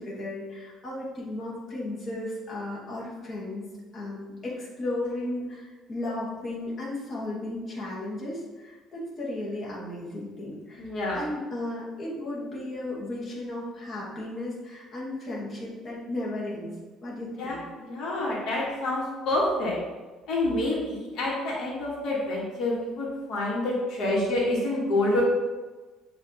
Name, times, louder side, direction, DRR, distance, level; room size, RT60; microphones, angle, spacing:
voice 1, 0.0-3.7 3.9-10.9 11.1-16.7 17.0-17.6, left 1 dB, 30° left, -6 dB, 1.1 m, -35 dB
voice 2, 10.8-11.3 17.4-19.8 20.3-25.2, left 1 dB, 65° left, -4 dB, 1.3 m, -27 dB
7.3 x 2.6 x 2.8 m, 1.3 s
cardioid pair, 140°, 0 cm